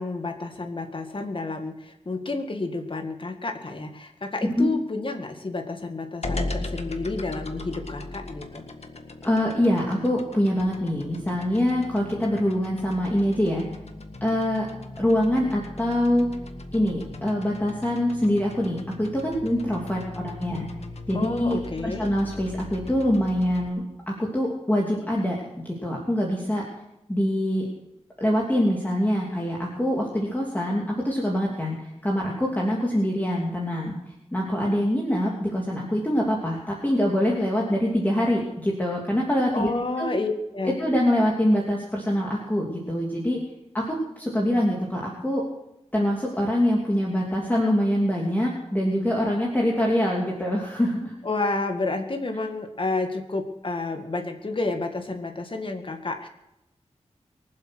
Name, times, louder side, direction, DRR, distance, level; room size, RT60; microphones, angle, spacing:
voice 1, 0.0-8.6 21.1-22.1 39.5-40.8 51.2-56.3, left 3 dB, 45° left, 5 dB, 1.9 m, -30 dB
sound 1, 6.2-23.7, left 2 dB, 65° left, 1.7 m, -38 dB
voice 2, 9.2-13.6 14.2-14.6 15.0-16.3 16.7-20.7 21.1-26.6 27.1-27.7 28.2-31.8 32.0-34.0 34.3-39.7 40.0-40.1 40.6-43.4 43.7-45.4 45.9-51.1, equal, 15° left, -2 dB, 2.9 m, -24 dB
23.5 x 8.0 x 6.3 m, 0.88 s
wide cardioid pair, 75°, 12 cm